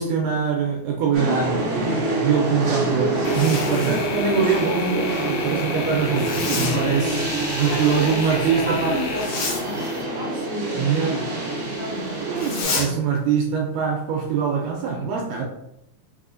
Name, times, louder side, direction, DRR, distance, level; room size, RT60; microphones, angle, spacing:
voice 1, 0.0-9.0 10.8-11.3 11.9-15.4, right 6 dB, 80° right, -1 dB, 2.0 m, -24 dB
sound 1, 1.1-12.6, right 2 dB, 60° right, 1.3 m, -26 dB
Zipper (clothing), 3.1-4.1 6.1-6.8 9.1-9.6 12.3-12.9, left 4 dB, 70° left, 2.0 m, -29 dB
sound 2, 3.2-10.0, left 8 dB, 85° left, 2.4 m, -35 dB
voice 2, 7.6-13.0, left 2 dB, 50° left, -9 dB, 2.1 m, -33 dB
5.4 x 3.3 x 2.5 m, 0.82 s
omnidirectional pair, 4.2 m